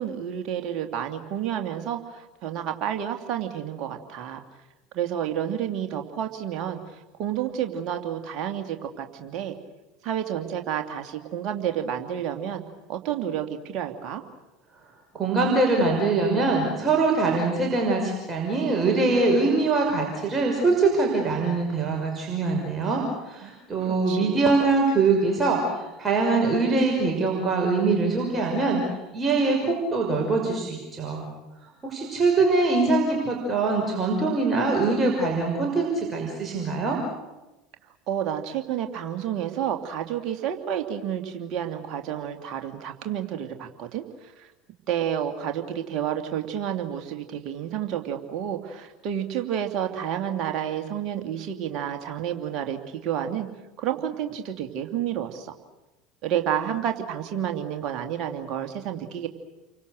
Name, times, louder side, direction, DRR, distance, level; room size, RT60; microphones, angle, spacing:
voice 1, 0.0-4.4 4.9-6.8 7.2-9.6 10.0-12.6 12.9-14.2 23.4-23.5 24.1-24.4 38.1-44.5 44.9-53.5 53.8-55.5 56.2-59.3, right 9 dB, 50° right, 5 dB, 2.6 m, -30 dB
voice 2, 15.1-28.8 29.1-31.3 31.8-37.0, right 3 dB, 25° right, 0 dB, 5.8 m, -23 dB
29.5 x 24.5 x 6.6 m, 1.0 s
figure-of-eight pair, 70°, 0 cm